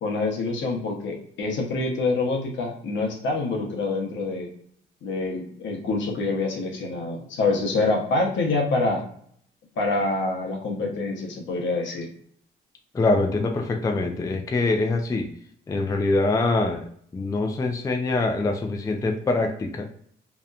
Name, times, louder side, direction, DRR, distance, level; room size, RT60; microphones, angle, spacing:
voice 1, 0.0-4.5 5.0-9.0 9.8-12.1, left 3 dB, 70° left, 1 dB, 0.8 m, -26 dB
voice 2, 12.9-15.3 15.7-16.8 17.1-19.9, left 2 dB, 15° left, 3 dB, 0.3 m, -24 dB
2.8 x 2.1 x 2.4 m, 0.63 s
cardioid pair, 90°, 20 cm